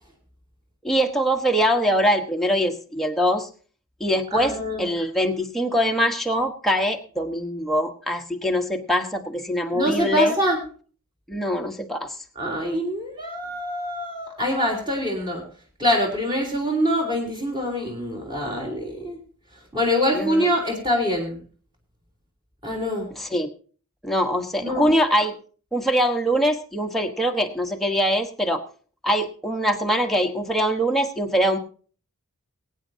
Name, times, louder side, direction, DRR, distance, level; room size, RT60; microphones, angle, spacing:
voice 1, 0.8-3.5 4.0-10.3 11.3-12.1 20.1-20.5 23.2-23.5 24.0-25.3 25.7-28.6 29.0-31.6, equal, ahead, 2 dB, 1.2 m, -23 dB
voice 2, 4.3-4.9 9.7-10.6 12.4-15.5 15.8-19.2 19.7-21.4 22.6-23.1 24.6-24.9, equal, 20° right, 0 dB, 3.4 m, -24 dB
22.5 x 9.2 x 2.8 m, 0.40 s
head